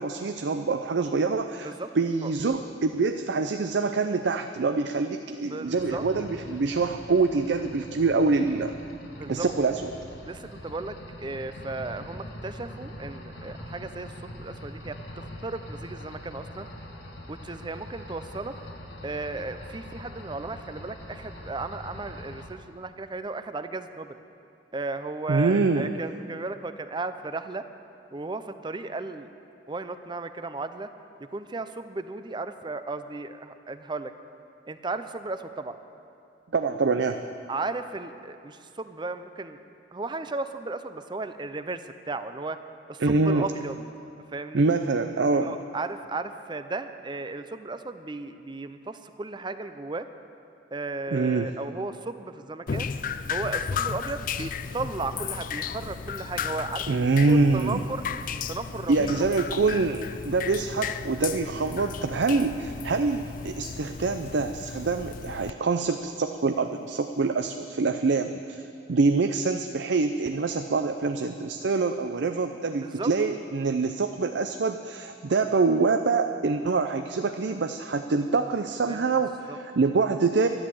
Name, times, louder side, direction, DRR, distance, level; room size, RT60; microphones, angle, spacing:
voice 1, 0.0-8.7 9.3-9.9 25.3-25.9 36.5-37.2 43.0-43.5 44.5-45.6 51.1-51.5 56.9-57.9 58.9-68.6 68.9-80.5, right 4 dB, 70° right, 7 dB, 0.5 m, -25 dB
voice 2, 5.4-6.0 9.2-9.5 10.3-16.7 17.3-18.5 19.0-24.2 24.7-27.6 28.1-29.3 29.7-30.9 31.2-34.1 34.7-35.8 37.5-39.6 39.9-42.6 42.9-43.9 44.3-44.6 45.4-50.1 50.7-52.9 53.3-57.0 57.3-58.1 58.5-59.1 68.1-68.2 68.9-69.0 72.8-73.1 78.9-79.2 79.5-79.6, right 3 dB, 25° right, 10 dB, 0.5 m, -35 dB
sound 1, 5.7-22.5, left 1 dB, 80° left, 1.7 m, -43 dB
Drip, 52.7-65.5, left 6 dB, 45° left, 0.4 m, -34 dB
12.0 x 11.5 x 7.7 m, 2.6 s
head